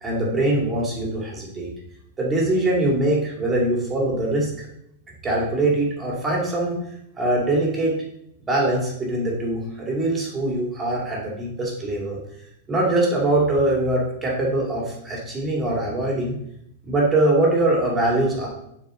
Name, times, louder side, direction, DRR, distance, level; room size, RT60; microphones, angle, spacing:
voice 1, 0.0-1.7 2.2-4.5 5.2-6.8 7.2-7.9 8.4-12.2 12.7-16.3 16.8-18.5, right 2 dB, 15° right, -3 dB, 2.2 m, -22 dB
6.7 x 4.3 x 3.7 m, 0.75 s
supercardioid pair, 140°, 0 cm